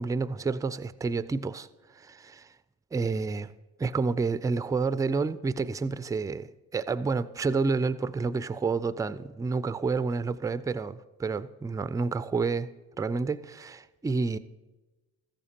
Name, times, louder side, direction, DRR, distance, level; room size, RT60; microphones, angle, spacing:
voice 1, 0.0-1.7 1.9-2.5 2.9-3.5 3.8-12.7 13.0-14.4, right 4 dB, 10° right, 0.3 m, -29 dB
14.0 x 13.5 x 2.9 m
hypercardioid pair, 50°, 45 cm